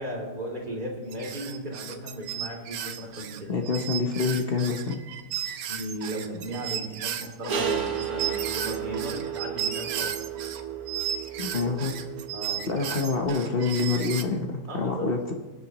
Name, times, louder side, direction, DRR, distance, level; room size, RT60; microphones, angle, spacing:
voice 1, 0.0-3.5 5.7-10.2 12.3-13.2 14.7-15.1, right 1 dB, 25° right, -2 dB, 2.9 m, -36 dB
sound 1, 1.1-10.6 10.9-14.2, right 9 dB, 80° right, 1.4 m, -34 dB
voice 2, 3.5-5.0 11.4-12.1 12.7-15.4, left 4 dB, 45° left, 3 dB, 0.9 m, -27 dB
sound 2, 7.5-13.3, right 8 dB, 65° right, 1.5 m, -33 dB
26.0 x 9.1 x 3.0 m, 1.3 s
omnidirectional pair, 1.8 m